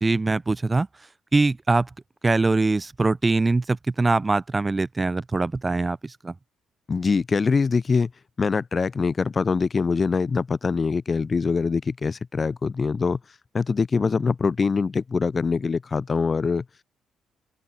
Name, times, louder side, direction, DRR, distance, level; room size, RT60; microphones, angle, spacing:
voice 1, 0.0-0.9 1.3-1.9 2.2-6.3, right 3 dB, 20° right, 1.1 m, -22 dB
voice 2, 6.9-8.1 8.4-13.2 13.5-16.6, left 5 dB, 35° left, 1.3 m, -23 dB
open air
cardioid pair, 90°, 0 cm